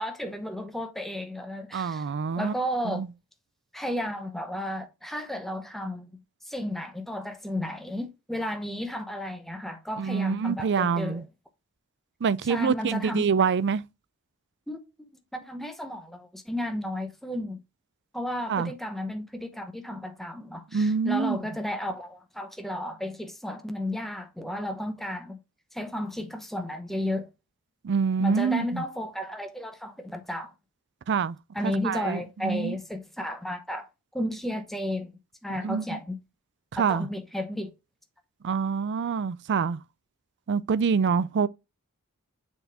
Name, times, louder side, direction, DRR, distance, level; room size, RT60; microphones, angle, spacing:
voice 1, 0.0-2.1 2.4-3.1 3.7-11.3 12.4-13.3 14.7-14.8 15.3-17.6 18.1-25.4 25.7-27.3 28.2-30.5 31.5-35.1 35.4-36.2 36.8-37.7, left 1 dB, ahead, 0.9 m, -33 dB
voice 2, 1.7-2.5 2.8-3.1 10.0-11.2 12.2-13.8 18.5-18.7 20.7-21.4 27.8-28.8 31.1-31.4 31.6-32.8 35.6-36.0 36.7-37.1 38.4-39.8 40.5-41.5, right 6 dB, 50° right, 0.4 m, -26 dB
6.9 x 4.2 x 3.4 m
head